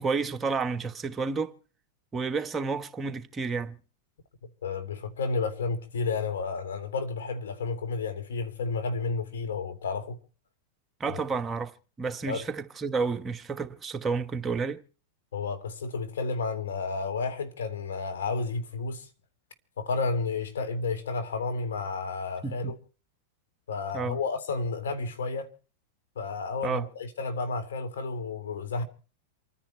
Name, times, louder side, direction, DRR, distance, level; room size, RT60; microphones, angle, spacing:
voice 1, 0.0-1.6 2.1-3.7 11.0-11.7 12.0-14.8 22.4-22.7 23.9-24.2 26.6-26.8, right 4 dB, 20° right, 1.2 m, -30 dB
voice 2, 4.6-10.2 11.1-11.2 12.3-12.4 15.3-19.1 19.8-22.8 23.7-25.5 26.2-28.8, left 4 dB, 85° left, 3.5 m, -31 dB
28.0 x 10.5 x 4.5 m
hypercardioid pair, 120°, 0 cm